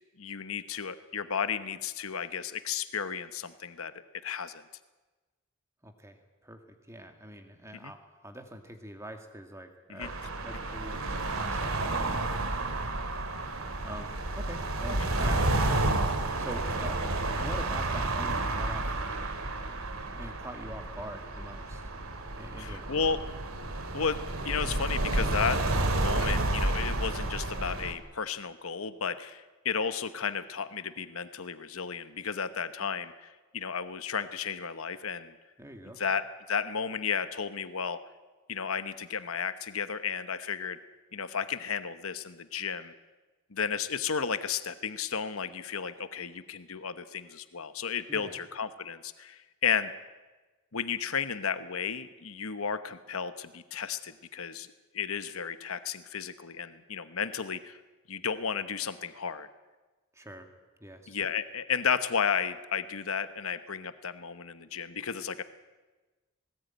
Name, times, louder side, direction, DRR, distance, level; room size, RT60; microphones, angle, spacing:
voice 1, 0.2-3.9 4.2-4.6 7.8-7.9 9.9-10.1 22.6-23.2 23.9-25.6 25.9-33.3 33.5-35.3 36.0-36.2 36.5-38.0 38.5-40.8 41.1-42.9 43.5-49.9 50.7-54.7 54.9-57.8 58.1-59.5 61.1-65.4, left 6 dB, 80° left, 12 dB, 1.0 m, -33 dB
voice 2, 5.8-11.7 12.0-12.4 13.8-17.0 17.4-19.0 20.0-21.8 22.4-22.9 35.6-36.0 48.1-48.4 60.1-60.5 60.8-61.2, right 1 dB, 15° right, 5 dB, 2.2 m, -44 dB
sound 1, 10.0-27.9, right 2 dB, 80° right, 2.4 m, -31 dB
19.5 x 19.0 x 9.2 m, 1.2 s
head